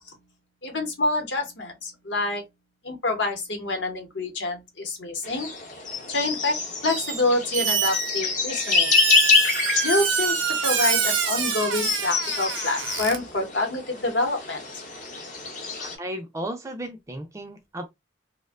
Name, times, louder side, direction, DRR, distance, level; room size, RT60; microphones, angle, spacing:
voice 1, 0.6-2.4 2.8-5.5 6.1-9.0 9.8-14.6, left 2 dB, 65° left, 0.9 m, -27 dB
sound 1, 5.2-16.0, left 4 dB, 45° left, 0.6 m, -27 dB
Squeak, 6.9-7.2 7.5-13.2, right 7 dB, 85° right, 0.5 m, -27 dB
voice 2, 15.8-17.9, right 1 dB, 15° right, 0.3 m, -34 dB
2.5 x 2.1 x 2.3 m
head